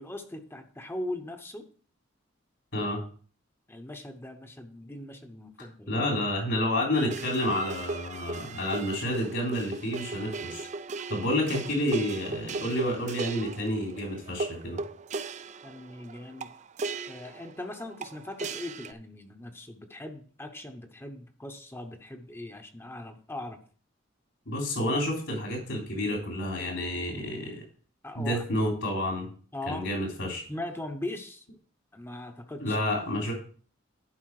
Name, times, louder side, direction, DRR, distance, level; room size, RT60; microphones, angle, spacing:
voice 1, 0.0-1.7 2.8-2.9 3.7-5.9 15.6-16.6 17.1-23.6 28.0-28.4 29.5-29.9 30.5-31.5 31.9-32.8, left 1 dB, 10° left, 6 dB, 0.9 m, -40 dB
voice 2, 5.9-10.7 11.1-14.8 24.5-27.6 28.2-29.3 29.7-30.4 32.6-33.3, left 1 dB, 75° left, -1 dB, 3.4 m, -29 dB
sound 1, 6.9-18.9, right 3 dB, 35° right, 0.4 m, -37 dB
11.5 x 5.1 x 4.8 m, 0.43 s
head